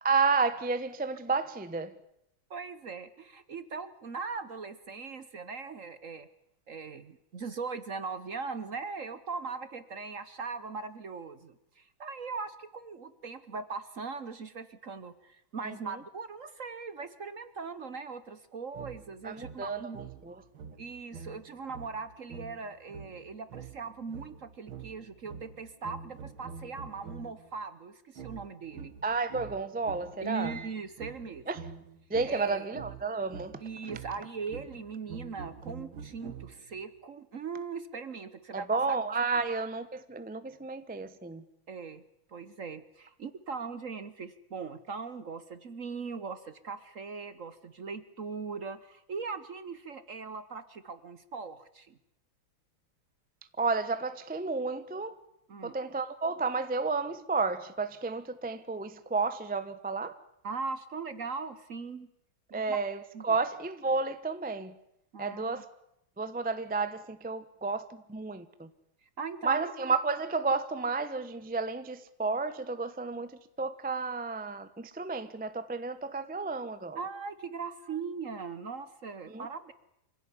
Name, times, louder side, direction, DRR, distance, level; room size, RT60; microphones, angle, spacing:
voice 1, 0.0-1.9 15.6-16.0 19.2-20.4 29.0-30.5 31.5-31.6 32.1-33.6 38.5-41.4 53.6-55.2 55.6-60.1 62.5-64.7 65.2-65.7 66.2-68.7 69.4-77.0 79.3-79.5, right 4 dB, 5° right, 0.7 m, -32 dB
voice 2, 2.5-6.3 6.7-20.0 20.8-28.9 30.2-31.4 32.2-32.7 33.6-39.0 41.7-42.0 42.3-52.0 55.5-55.7 60.4-62.1 62.5-62.8 63.1-63.4 65.1-65.6 69.2-69.7 76.9-79.7, right 5 dB, 50° right, 1.2 m, -40 dB
sound 1, 18.7-27.5 28.2-36.8, right 6 dB, 85° right, 2.4 m, -46 dB
26.0 x 16.5 x 9.9 m
omnidirectional pair, 2.2 m